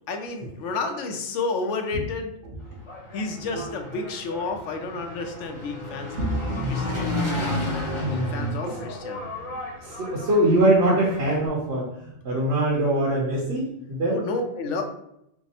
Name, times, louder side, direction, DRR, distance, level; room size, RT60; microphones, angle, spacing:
voice 1, 0.1-2.3 3.1-6.3 6.7-7.7 8.1-9.6 14.1-14.8, left 3 dB, 75° left, 4 dB, 0.9 m, -31 dB
Engine, 2.6-11.5, left 2 dB, 25° left, 0.8 m, -32 dB
voice 2, 6.2-6.9 8.0-8.8 9.5-14.2, right 1 dB, 65° right, -4 dB, 1.1 m, -24 dB
3.5 x 2.0 x 4.0 m, 0.78 s
omnidirectional pair, 1.3 m